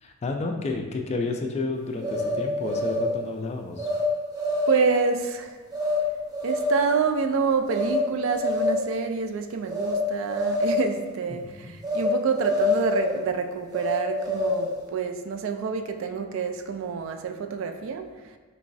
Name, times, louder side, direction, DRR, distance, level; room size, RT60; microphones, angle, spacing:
voice 1, 0.0-3.9 11.4-11.7, left 3 dB, 30° left, 4 dB, 0.3 m, -31 dB
sound 1, 2.0-3.1 3.8-4.0 4.3-4.9 5.7-6.0 6.3-6.9 7.7-8.0 8.3-8.9 9.7-10.0 10.3-10.9 11.8-12.1 12.3-13.2 13.7-14.7, left 1 dB, 20° right, 0.6 m, -26 dB
voice 2, 4.7-5.6 6.4-18.1, right 5 dB, 70° right, 6 dB, 0.3 m, -27 dB
4.6 x 3.0 x 2.6 m, 1.4 s
head